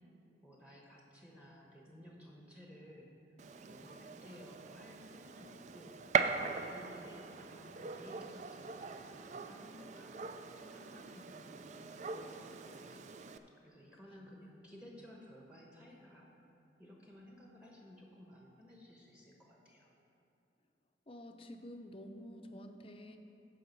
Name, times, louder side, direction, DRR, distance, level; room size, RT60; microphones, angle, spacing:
voice 1, 0.4-3.4 3.7-13.0 13.6-16.3 16.8-19.9, equal, 5° right, -1 dB, 1.0 m, -56 dB
Gunshot gunfire, 3.4-13.4, right 5 dB, 40° right, 0.3 m, -41 dB
voice 2, 21.1-23.2, equal, 30° left, 6 dB, 0.5 m, -49 dB
13.0 x 4.9 x 5.3 m, 2.7 s
head